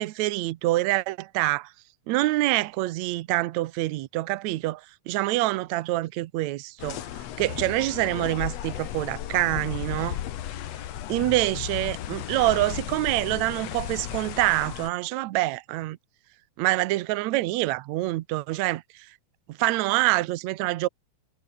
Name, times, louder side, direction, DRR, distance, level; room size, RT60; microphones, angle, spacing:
voice 1, 0.0-1.7 2.1-4.8 5.1-7.0 7.4-10.2 11.1-16.0 16.6-18.8 19.6-20.9, right 18 dB, 75° right, 2.0 m, -26 dB
sound 1, 6.8-14.9, left 12 dB, 65° left, 2.2 m, -35 dB
omnidirectional pair, 3.4 m